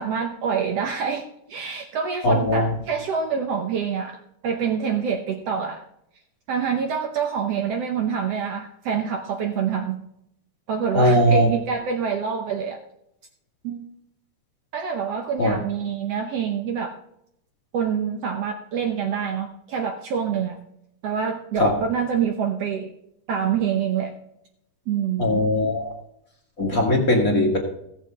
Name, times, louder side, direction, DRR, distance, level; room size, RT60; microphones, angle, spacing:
voice 1, 0.0-5.8 6.5-10.0 10.7-12.8 13.6-13.8 14.7-16.9 17.7-20.6 21.0-22.9 23.3-24.1 24.9-25.4, right 7 dB, 70° right, 4 dB, 1.5 m, -26 dB
voice 2, 2.2-2.7 10.9-11.5 15.4-15.5 21.6-21.8 25.2-25.9 26.6-27.6, left 1 dB, 35° left, 0 dB, 1.6 m, -19 dB
16.5 x 7.2 x 3.5 m, 0.77 s
omnidirectional pair, 3.8 m